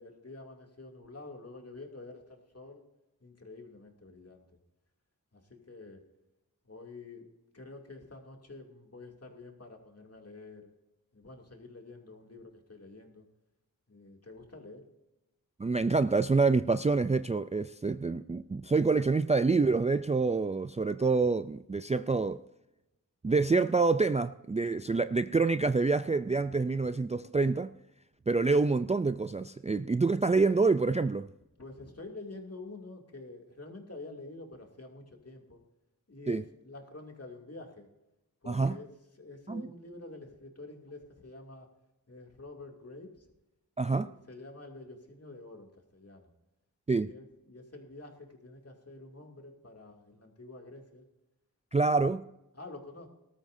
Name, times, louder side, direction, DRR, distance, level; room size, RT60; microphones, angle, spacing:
voice 1, 0.0-2.8 3.2-4.4 5.3-6.0 6.6-7.3 7.5-10.7 11.1-13.2 13.9-14.9 31.6-35.6 36.1-37.9 38.4-38.9 39.2-41.7 42.1-43.3 43.9-46.3 47.0-51.0 51.8-52.0 52.5-53.1, left 2 dB, 45° left, 2.7 m, -48 dB
voice 2, 15.6-22.4 23.2-27.7 28.3-31.3 36.3-36.4 38.5-38.8 39.5-39.7 43.8-44.1 46.9-47.1 51.7-52.2, right 4 dB, 20° right, 0.4 m, -27 dB
19.0 x 13.0 x 2.7 m
wide cardioid pair, 65°, 35 cm